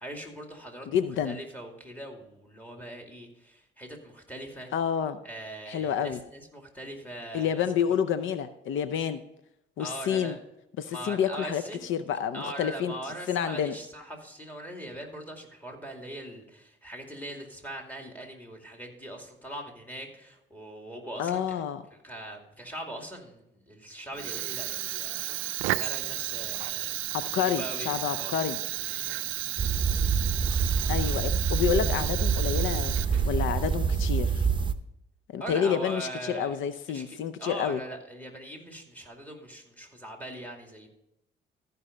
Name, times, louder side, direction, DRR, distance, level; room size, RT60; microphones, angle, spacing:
voice 1, 0.0-0.9 1.2-4.7 5.2-7.6 9.8-10.4 10.9-11.9 12.3-21.6 21.9-25.2 25.8-26.9 27.3-28.4 28.9-29.4 35.4-36.6 36.9-40.9, right 1 dB, 10° left, 2 dB, 2.4 m, -41 dB
voice 2, 0.9-1.4 4.7-5.2 5.7-6.2 7.3-9.2 9.8-10.4 10.8-13.8 21.2-21.8 27.1-28.6 30.9-33.0 33.3-34.5 35.3-37.8, left 8 dB, 80° left, 12 dB, 0.6 m, -29 dB
Fire, 24.1-33.5, right 16 dB, 90° right, 0.4 m, -33 dB
sound 1, 29.6-34.7, right 6 dB, 25° right, 0.7 m, -26 dB
14.0 x 5.5 x 5.0 m, 0.84 s
cardioid pair, 90°, 20 cm